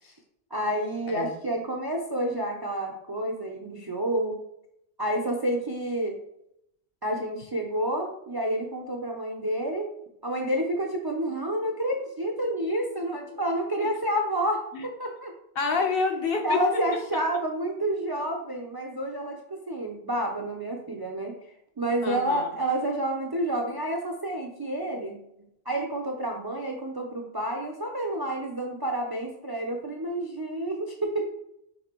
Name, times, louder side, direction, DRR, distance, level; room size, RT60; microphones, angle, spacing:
voice 1, 0.5-4.4 5.0-6.2 7.0-9.9 10.2-15.3 16.4-21.4 21.8-25.2 25.7-31.3, right 1 dB, 40° right, 1 dB, 0.3 m, -29 dB
voice 2, 15.6-16.6 22.0-22.5, left 4 dB, 65° left, 4 dB, 0.9 m, -27 dB
5.5 x 3.3 x 2.9 m, 0.79 s
omnidirectional pair, 1.0 m